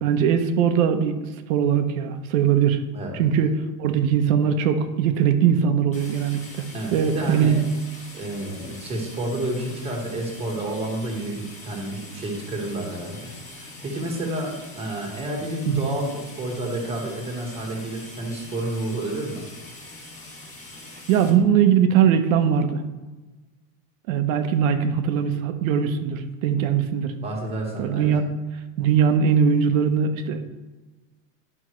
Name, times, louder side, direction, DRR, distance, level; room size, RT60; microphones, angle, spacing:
voice 1, 0.0-1.2 1.5-2.8 3.1-6.4 6.9-7.6 15.7-15.8 21.1-22.8 24.1-27.1 27.8-28.2 28.8-30.5, right 7 dB, 70° right, 7 dB, 0.9 m, -20 dB
sound 1, 5.9-21.3, left 2 dB, 15° left, 1.3 m, -43 dB
voice 2, 6.7-7.6 8.1-13.3 13.6-19.4 27.2-28.1, right 1 dB, 15° right, -1 dB, 1.3 m, -30 dB
11.0 x 5.5 x 3.1 m, 1.2 s
supercardioid pair, 170°, 42 cm